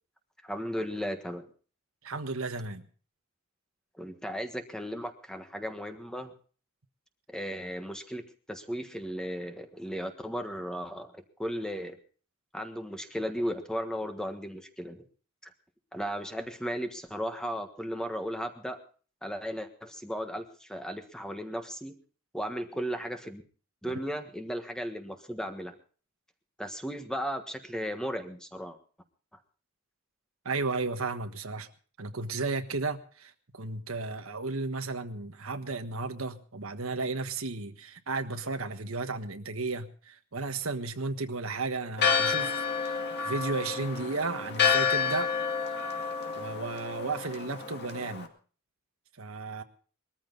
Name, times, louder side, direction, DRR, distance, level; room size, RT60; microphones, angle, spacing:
voice 1, 0.4-1.4 4.0-6.3 7.3-8.2 8.5-12.0 12.5-15.0 15.4-15.5 15.9-18.8 19.2-21.9 22.3-23.4 23.8-25.7 26.6-28.8, equal, 5° left, 6 dB, 1.5 m, -35 dB
voice 2, 2.0-2.9 23.9-24.0 30.4-31.7 32.0-43.0 43.2-45.3 45.8-46.0 46.3-48.3 49.2-49.6, right 3 dB, 85° right, 7 dB, 1.5 m, -34 dB
Church bell, 42.0-48.3, left 6 dB, 55° left, 2.2 m, -29 dB
21.5 x 14.0 x 4.0 m, 0.41 s
head